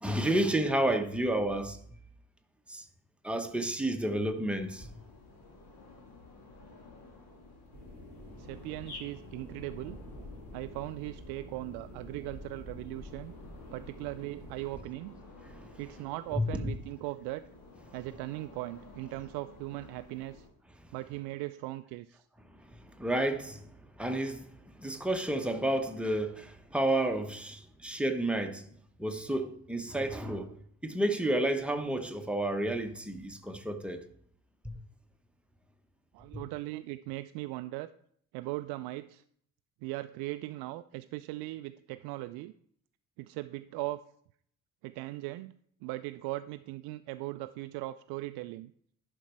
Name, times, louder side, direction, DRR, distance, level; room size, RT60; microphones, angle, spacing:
voice 1, 0.0-1.8 2.7-2.8 3.2-4.9 16.4-16.7 23.0-23.7 24.0-24.5 24.8-28.6 29.0-30.5 30.8-34.0, right 1 dB, ahead, 1.1 m, -30 dB
sound 1, 4.5-20.5, left 2 dB, 50° left, 2.7 m, -54 dB
sound 2, 7.7-14.8, left 1 dB, 70° left, 3.9 m, -47 dB
voice 2, 8.4-10.0 10.5-13.3 13.7-15.2 15.5-17.4 17.9-20.5 20.9-22.3 36.1-37.9 38.3-39.2 39.8-42.5 43.2-44.0 44.8-45.5 45.8-48.7, right 18 dB, 55° right, 0.5 m, -39 dB
11.0 x 5.4 x 4.6 m
figure-of-eight pair, 45°, 47 cm